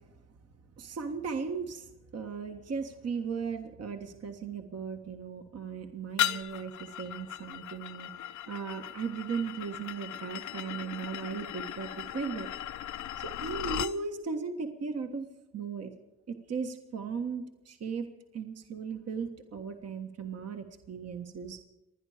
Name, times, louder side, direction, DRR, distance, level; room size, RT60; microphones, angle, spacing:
voice 1, 0.8-8.1 8.5-12.5 13.2-15.3 15.5-15.9 16.3-18.0 18.3-21.6, right 5 dB, 50° right, 5 dB, 1.5 m, -37 dB
sound 1, 6.2-14.0, left 11 dB, 65° left, 0.8 m, -37 dB
28.5 x 10.0 x 5.0 m, 1.0 s
cardioid pair, 80°, 32 cm